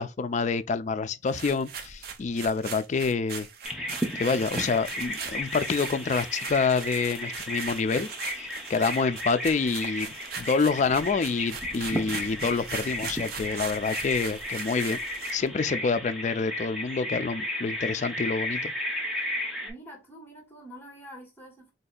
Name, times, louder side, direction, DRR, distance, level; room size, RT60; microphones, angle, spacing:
voice 1, 0.0-3.5 4.1-8.1 8.4-15.0 15.3-18.7, left 4 dB, 40° left, 0.3 m, -27 dB
sound 1, 1.3-15.5, right 6 dB, 55° right, 0.6 m, -40 dB
Bird vocalization bird call bird song, 3.6-19.7, left 1 dB, 5° right, 0.7 m, -34 dB
voice 2, 19.6-21.7, right 1 dB, 10° left, 1.4 m, -46 dB
4.0 x 2.7 x 2.2 m
head